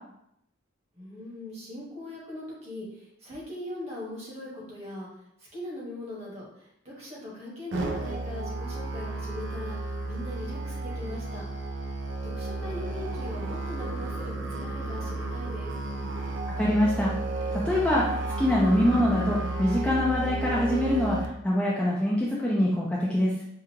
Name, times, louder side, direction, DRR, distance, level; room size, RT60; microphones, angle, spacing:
voice 1, 0.9-5.1 5.4-11.5 12.2-15.7, left 1 dB, 30° right, -5 dB, 1.2 m, -40 dB
Musical instrument, 7.7-21.2, right 2 dB, 60° right, 0.5 m, -32 dB
voice 2, 16.6-17.2 17.5-23.3, left 1 dB, 5° left, -5 dB, 0.4 m, -24 dB
5.0 x 2.4 x 2.8 m, 0.77 s
head